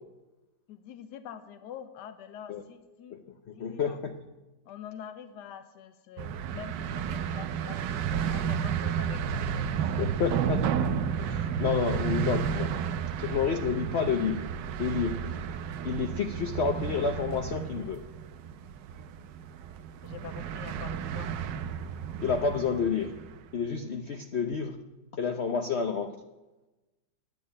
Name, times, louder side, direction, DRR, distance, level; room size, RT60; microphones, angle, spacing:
voice 1, 0.7-3.2 3.5-4.0 4.7-9.9 20.0-21.3, left 9 dB, 75° left, 10 dB, 1.3 m, -45 dB
voice 2, 3.5-4.2 10.0-10.6 11.2-12.7 13.2-14.4 14.8-15.4 15.8-18.0 22.2-23.1 23.5-24.8 25.1-26.1, left 6 dB, 55° left, 6 dB, 0.8 m, -29 dB
sound 1, 6.2-23.4, right 8 dB, 90° right, 1.4 m, -32 dB
10.5 x 8.5 x 9.8 m, 1.1 s
omnidirectional pair, 1.9 m